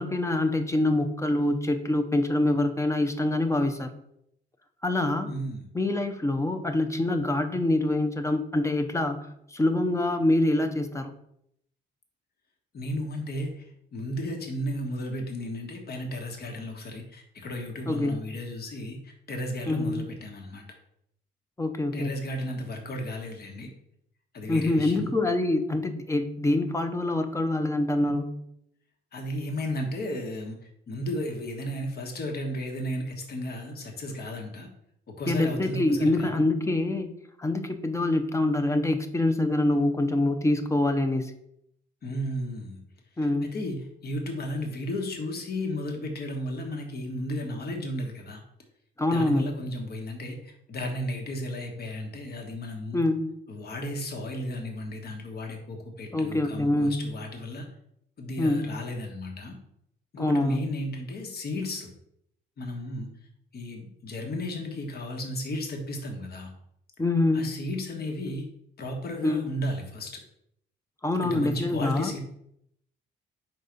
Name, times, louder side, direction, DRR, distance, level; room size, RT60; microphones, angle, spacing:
voice 1, 0.0-3.9 4.8-5.3 5.7-9.2 9.5-11.1 17.9-18.2 19.7-20.1 21.6-22.1 24.5-28.4 35.3-37.1 37.4-41.3 43.2-43.5 49.0-49.5 52.9-53.3 56.1-57.0 58.4-58.7 60.2-60.6 67.0-67.5 69.2-69.5 71.0-72.1, left 2 dB, 15° left, 6 dB, 0.7 m, -25 dB
voice 2, 5.3-5.7 12.7-20.6 21.9-23.7 24.3-25.1 29.1-30.6 30.9-34.7 35.1-36.3 42.0-42.8 43.2-48.4 49.1-53.0 53.5-57.7 58.2-59.5 60.1-61.9 62.6-63.1 63.5-66.5 67.3-68.5 68.8-70.1 71.2-72.2, left 1 dB, 55° left, 2 dB, 1.4 m, -34 dB
4.7 x 4.0 x 5.2 m, 0.75 s
cardioid pair, 90°, 20 cm